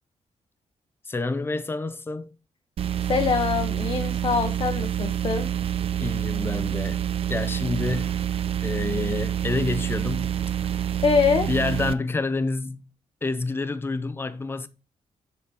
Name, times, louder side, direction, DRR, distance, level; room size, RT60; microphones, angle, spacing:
voice 1, 1.1-2.3 6.0-7.0 7.3-8.2 8.6-10.4 11.5-12.9 13.2-14.7, left 3 dB, 20° left, 0.6 m, -28 dB
sound 1, 2.8-11.9, right 10 dB, 55° right, 0.5 m, -27 dB
voice 2, 3.1-5.5 11.0-11.5, left 5 dB, 45° left, 0.8 m, -24 dB
6.8 x 5.6 x 3.6 m
wide cardioid pair, 130°, 12 cm